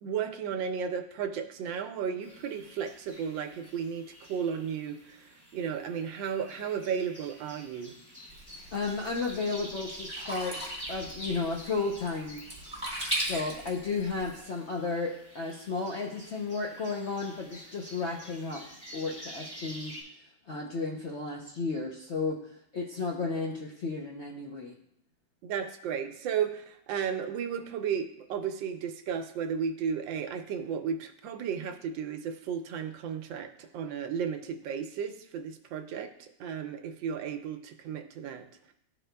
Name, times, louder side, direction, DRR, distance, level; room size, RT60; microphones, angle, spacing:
voice 1, 0.0-8.0 25.4-38.5, right 7 dB, 85° right, 6 dB, 1.4 m, -34 dB
sound 1, 2.2-20.0, equal, 10° left, 1.7 m, -48 dB
Sink (filling or washing), 8.3-14.4, right 1 dB, 5° right, 1.9 m, -38 dB
voice 2, 8.7-12.4 13.3-18.6 18.9-19.9 20.5-22.4 22.7-24.8, left 4 dB, 65° left, -1 dB, 0.7 m, -33 dB
12.5 x 4.3 x 2.2 m, 0.75 s
omnidirectional pair, 2.0 m